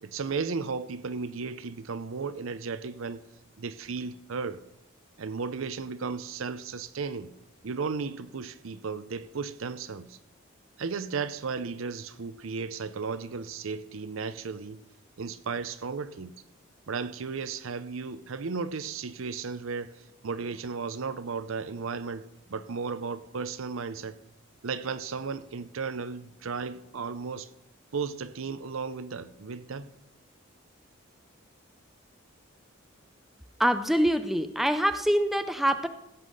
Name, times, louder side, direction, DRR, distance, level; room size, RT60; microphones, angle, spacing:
voice 1, 0.0-3.2 3.6-4.6 5.2-7.3 7.6-10.2 10.8-14.8 15.2-16.3 16.9-24.2 24.6-27.5 27.9-29.9, right 5 dB, 70° right, 0.6 m, -35 dB
voice 2, 33.6-35.9, equal, ahead, 0.4 m, -25 dB
16.5 x 5.6 x 6.4 m
head